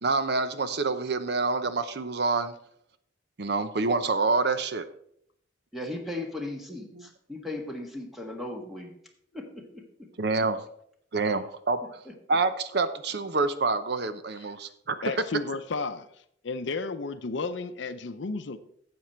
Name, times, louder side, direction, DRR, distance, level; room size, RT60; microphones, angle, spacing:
voice 1, 0.0-2.5 3.4-4.8 6.9-7.1 10.2-10.6 11.1-12.0 12.3-15.0, right 3 dB, 55° right, 11 dB, 0.7 m, -27 dB
voice 2, 5.7-8.9 9.3-9.8 12.3-12.4, left 1 dB, ahead, 1 dB, 1.6 m, -37 dB
voice 3, 15.0-16.1 16.4-18.6, left 3 dB, 70° left, 11 dB, 0.6 m, -32 dB
12.5 x 7.8 x 4.4 m, 0.70 s
head